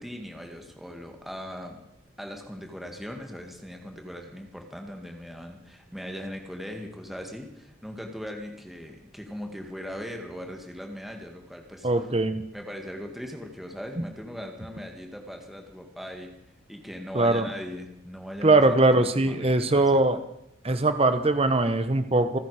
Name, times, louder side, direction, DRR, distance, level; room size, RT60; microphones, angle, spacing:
voice 1, 0.0-1.8 2.2-11.9 12.5-16.3 16.7-20.0, equal, ahead, 2 dB, 1.8 m, -39 dB
voice 2, 11.8-12.4 17.1-17.5 18.4-20.2 20.6-22.4, right 2 dB, 30° right, 10 dB, 1.1 m, -21 dB
28.5 x 10.0 x 4.9 m, 0.77 s
head